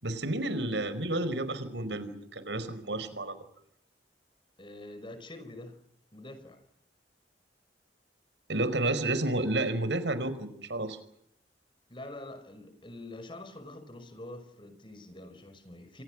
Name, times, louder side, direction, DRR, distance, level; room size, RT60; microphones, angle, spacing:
voice 1, 0.0-3.4 8.5-11.0, right 2 dB, 85° right, 5.0 m, -31 dB
voice 2, 4.6-5.8 6.1-6.6 11.9-16.0, left 1 dB, 30° left, 5.7 m, -45 dB
29.5 x 25.5 x 6.3 m
head